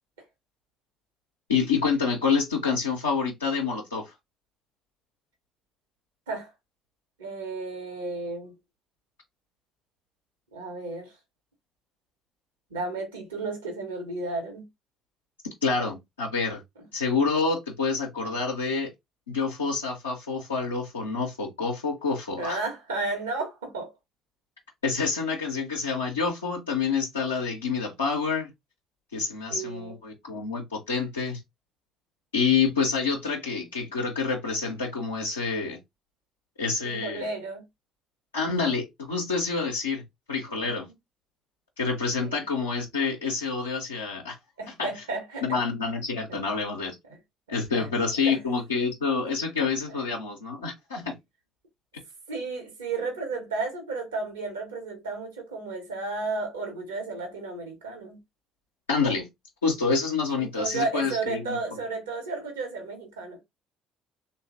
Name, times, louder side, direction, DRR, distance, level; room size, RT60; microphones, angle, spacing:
voice 1, 1.5-4.1 15.6-16.6 16.9-18.9 19.3-22.6 24.8-28.5 29.1-31.4 32.3-35.8 36.6-37.3 38.3-40.0 40.3-40.9 41.8-44.4 44.7-44.9 45.4-46.9 47.5-51.2 58.9-59.3 59.6-61.6, left 5 dB, 80° left, 0.5 m, -27 dB
voice 2, 7.2-8.5 10.5-11.1 12.7-14.6 22.4-23.9 29.5-30.0 36.8-37.6 40.5-40.7 42.2-42.4 44.6-45.4 46.3-46.4 47.5-47.9 48.2-48.4 49.9-50.0 52.3-58.2 60.3-63.4, right 3 dB, 75° right, 0.9 m, -33 dB
3.0 x 2.3 x 2.5 m
figure-of-eight pair, 50°, 0 cm